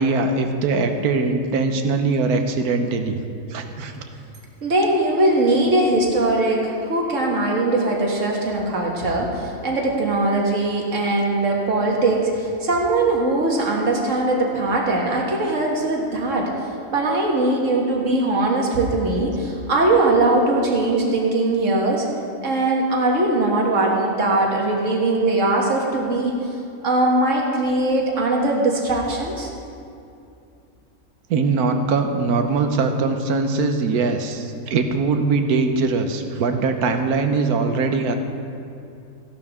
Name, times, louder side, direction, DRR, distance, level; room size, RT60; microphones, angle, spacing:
voice 1, 0.0-3.2 3.5-3.9 31.3-38.2, right 4 dB, 85° right, 6 dB, 1.4 m, -21 dB
voice 2, 4.6-16.5 16.9-22.1 22.4-26.3 26.8-29.5, right 2 dB, 55° right, -1 dB, 2.0 m, -20 dB
15.0 x 11.5 x 3.6 m, 2.6 s
omnidirectional pair, 1.6 m